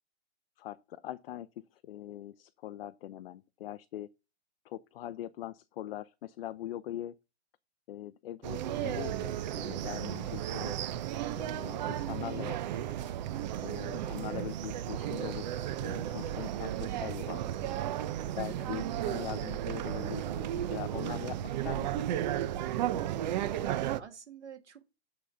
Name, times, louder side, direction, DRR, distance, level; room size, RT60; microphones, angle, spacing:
voice 1, 0.6-4.1 4.6-7.1 7.9-10.8 11.4-12.8 13.6-17.7 18.4-22.5, left 12 dB, 55° left, 0.6 m, -42 dB
sound 1, 8.4-24.0, right 11 dB, 40° right, 0.6 m, -34 dB
voice 2, 13.9-14.3 18.6-18.8 23.6-24.8, right 6 dB, 85° right, 1.7 m, -47 dB
8.5 x 4.0 x 5.6 m
hypercardioid pair, 130°, 34 cm